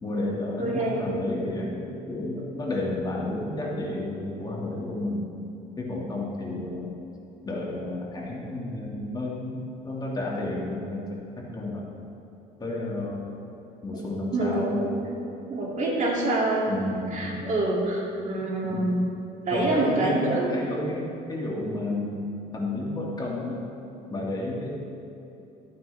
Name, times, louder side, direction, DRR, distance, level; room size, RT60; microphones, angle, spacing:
voice 1, 0.0-5.3 5.8-6.9 7.4-11.9 12.6-13.3 13.8-14.9 16.6-17.5 18.6-19.0 19.5-22.2 22.5-23.6 24.1-24.7, left 2 dB, 25° left, -3 dB, 2.0 m, -31 dB
voice 2, 0.6-1.1 14.3-14.9 15.5-16.7 17.1-19.1 19.4-20.5, right 2 dB, 45° right, -3 dB, 2.6 m, -26 dB
13.5 x 9.3 x 3.4 m, 2.9 s
cardioid pair, 110°, 17 cm